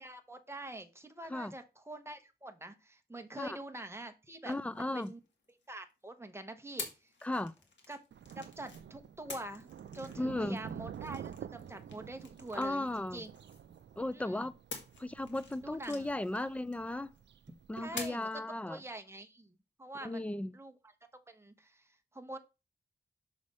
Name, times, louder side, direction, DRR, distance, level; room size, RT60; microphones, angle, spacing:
voice 1, 0.0-5.2 5.7-7.1 7.9-8.0 8.3-9.7 9.9-13.3 14.1-14.5 15.6-16.1 17.8-20.3 20.5-20.9 21.3-22.4, right 2 dB, 15° right, 0.9 m, -46 dB
sound 1, 4.5-5.9 6.8-8.8 9.3-14.0 14.7-17.2 18.0-18.4, left 4 dB, 85° left, 1.5 m, -49 dB
voice 2, 4.5-5.1 7.2-7.5 10.2-10.6 12.5-13.2 14.0-14.6 15.0-17.1 17.7-18.8 20.0-20.5, left 1 dB, 5° left, 0.4 m, -36 dB
Thunder, 8.1-18.1, right 8 dB, 75° right, 0.4 m, -49 dB
6.3 x 3.2 x 5.3 m
wide cardioid pair, 100°, 19 cm